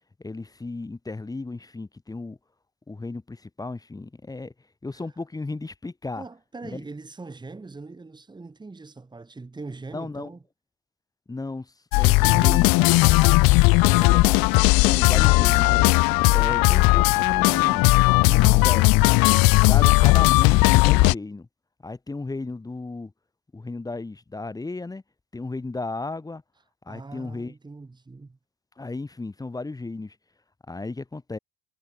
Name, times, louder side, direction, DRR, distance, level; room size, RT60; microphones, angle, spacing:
voice 1, 0.2-2.4 2.9-4.5 4.8-6.2 6.7-6.8 9.9-10.3 11.3-13.6 14.0-14.4 14.8-15.9 16.3-17.8 18.2-19.2 19.7-21.5 21.8-23.1 23.5-25.0 25.3-26.4 26.9-27.5 28.8-30.2 30.7-31.4, left 3 dB, 10° left, 2.2 m, -34 dB
voice 2, 6.2-10.4 13.6-14.7 26.9-28.4, right 3 dB, 10° right, 6.1 m, -42 dB
sound 1, 11.9-21.1, left 24 dB, 65° left, 1.0 m, -17 dB
cardioid pair, 165°, 38 cm